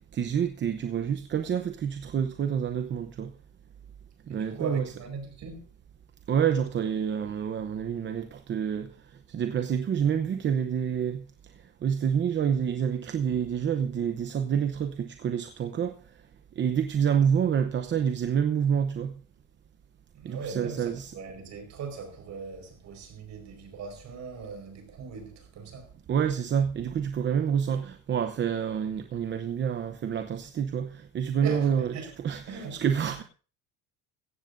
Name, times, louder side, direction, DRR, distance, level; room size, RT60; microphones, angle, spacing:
voice 1, 0.1-3.3 4.3-4.9 6.3-8.9 9.3-11.2 11.8-15.9 16.6-19.1 20.2-21.1 26.1-31.9 32.2-33.2, right 8 dB, 30° right, 0.8 m, -28 dB
voice 2, 4.3-5.6 20.1-25.9 31.4-32.1 32.5-32.8, right 4 dB, 45° right, 4.9 m, -39 dB
16.0 x 15.5 x 2.6 m
cardioid pair, 160°, 38 cm